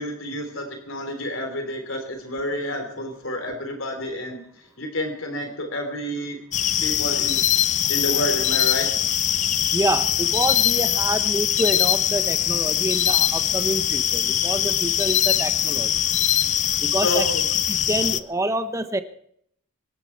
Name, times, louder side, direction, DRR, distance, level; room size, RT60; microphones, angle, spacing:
voice 1, 0.0-4.4 4.8-6.4 6.8-7.5 7.9-8.9 17.0-17.4, equal, 65° left, 5 dB, 3.3 m, -29 dB
sound 1, 6.5-18.2, left 10 dB, 35° left, 0.5 m, -22 dB
voice 2, 9.7-15.9 16.8-17.3 17.7-19.0, right 1 dB, 15° right, 10 dB, 1.0 m, -27 dB
25.0 x 11.5 x 4.6 m, 0.68 s
head